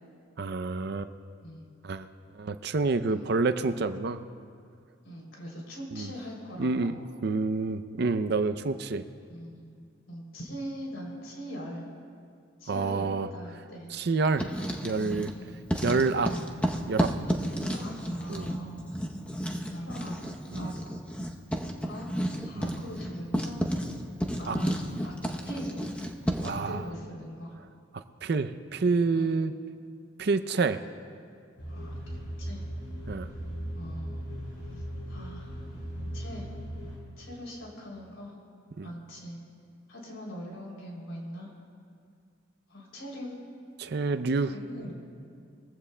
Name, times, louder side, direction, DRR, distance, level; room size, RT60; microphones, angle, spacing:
voice 1, 0.4-1.1 1.8-2.1 2.3-4.2 5.9-6.1 6.6-6.9 7.2-9.0 12.7-13.3 13.9-14.5 14.8-15.3 15.8-16.3 16.9-17.1 18.3-18.5 20.5-20.7 22.6-22.7 24.5-24.6 26.4-26.8 27.9-29.5 30.2-30.8 33.1-33.3 38.8-38.9 43.8-44.9, right 4 dB, 55° right, 10 dB, 0.5 m, -28 dB
voice 2, 5.0-6.9 9.3-11.8 12.6-13.0 13.3-13.9 15.3-15.6 17.6-18.8 19.7-20.2 20.6-20.7 21.8-22.1 22.4-23.6 24.4-24.7 25.0-25.1 25.4-25.7 26.6-27.6 29.1-29.3 31.7-32.6 33.7-34.2 34.7-35.6 36.1-36.5 37.2-38.3 38.8-39.4 39.9-41.5 42.7-43.3 44.5-44.9, equal, 90° left, -2 dB, 3.1 m, -41 dB
Writing, 14.2-15.4 15.7-26.7, equal, 5° left, 0.7 m, -32 dB
sound 1, 31.6-37.0, equal, 60° left, 3.6 m, -38 dB
21.5 x 15.5 x 2.2 m, 2.2 s
head